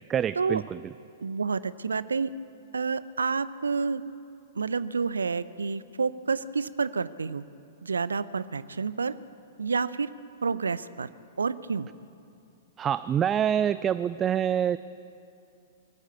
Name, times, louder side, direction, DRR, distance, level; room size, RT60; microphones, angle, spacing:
voice 1, 0.1-0.8 12.8-14.8, right 9 dB, 20° right, 15 dB, 0.4 m, -26 dB
voice 2, 1.2-2.3 2.7-4.0 4.5-7.4 7.8-9.1 9.6-10.1 10.4-11.1 11.4-11.9, right 5 dB, 75° right, 16 dB, 0.6 m, -29 dB
23.5 x 14.0 x 8.2 m, 2.5 s
figure-of-eight pair, 105°, 0 cm